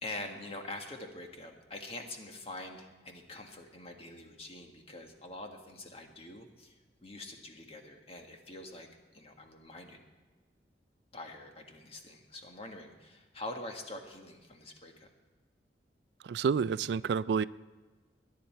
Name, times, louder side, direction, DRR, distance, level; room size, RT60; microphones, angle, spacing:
voice 1, 0.0-6.7 7.0-8.9 9.1-10.0 11.1-15.1, left 2 dB, 35° left, 3 dB, 1.6 m, -45 dB
voice 2, 16.2-17.4, right 6 dB, 70° right, 18 dB, 0.3 m, -29 dB
21.5 x 10.0 x 4.4 m, 1.3 s
head